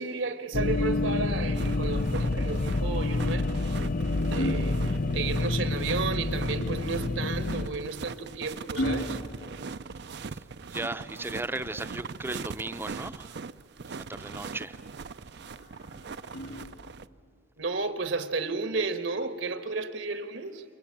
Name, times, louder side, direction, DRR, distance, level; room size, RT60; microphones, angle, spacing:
voice 1, 0.0-3.5 4.2-9.2 17.6-20.6, right 3 dB, 75° right, 1.6 m, -33 dB
sound 1, 0.5-7.7, left 2 dB, 45° left, 0.5 m, -28 dB
sound 2, 1.5-17.1, right 4 dB, 60° right, 0.6 m, -41 dB
sound 3, 3.2-5.7 7.3-10.4 12.2-13.4 15.4-17.2 18.4-18.6, equal, 70° left, 3.3 m, -38 dB
voice 2, 10.7-13.3 13.9-14.8, right 2 dB, 10° right, 0.6 m, -36 dB
28.5 x 23.0 x 8.6 m
head